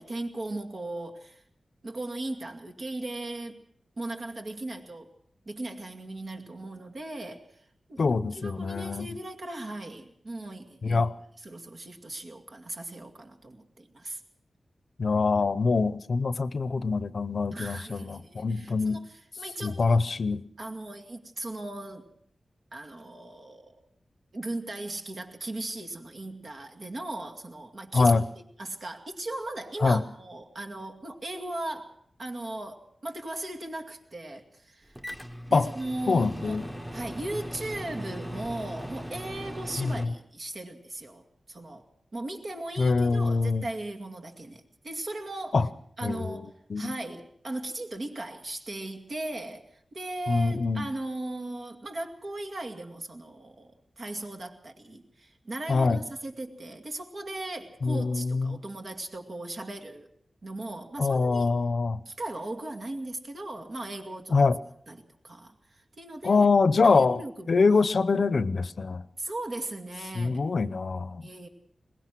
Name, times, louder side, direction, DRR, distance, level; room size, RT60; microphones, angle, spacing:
voice 1, 0.0-1.4 1.8-3.7 4.0-5.1 5.5-8.0 8.3-11.1 11.4-14.2 17.5-19.0 19.4-20.0 20.6-22.1 22.7-23.7 24.3-28.2 28.6-35.0 35.5-36.6 36.9-41.9 42.1-45.6 46.0-53.7 54.0-60.1 60.4-61.5 62.1-64.4 64.9-66.5 66.8-67.6 69.2-70.4 71.2-71.5, right 2 dB, 55° right, 4 dB, 2.3 m, -38 dB
voice 2, 8.0-9.2 10.8-11.1 15.0-19.0 19.6-20.5 27.9-28.2 29.8-30.0 35.5-35.7 36.1-36.6 39.8-40.1 42.8-43.7 45.5-45.7 46.0-46.4 46.7-46.9 50.3-50.9 55.7-56.0 57.8-58.6 61.0-62.0 64.3-64.6 66.2-69.0 70.1-71.3, left 4 dB, 60° left, 16 dB, 0.7 m, -24 dB
Microwave oven, 34.9-40.1, equal, 5° right, 1.2 m, -39 dB
22.5 x 20.0 x 6.1 m, 0.66 s
wide cardioid pair, 120°, 0 cm